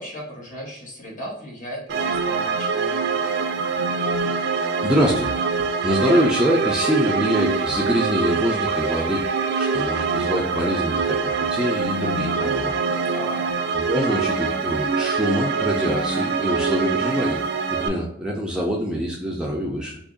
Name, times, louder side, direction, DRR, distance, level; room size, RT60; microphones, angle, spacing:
voice 1, 0.0-3.2 13.1-13.4, equal, 45° left, -2 dB, 1.2 m, -36 dB
sound 1, 1.9-17.9, right 4 dB, 65° right, 0.5 m, -24 dB
voice 2, 4.2-5.4 5.8-9.3 9.5-12.7 13.7-17.4 17.7-20.0, equal, 5° right, -2 dB, 0.5 m, -24 dB
3.0 x 2.6 x 3.7 m, 0.75 s
head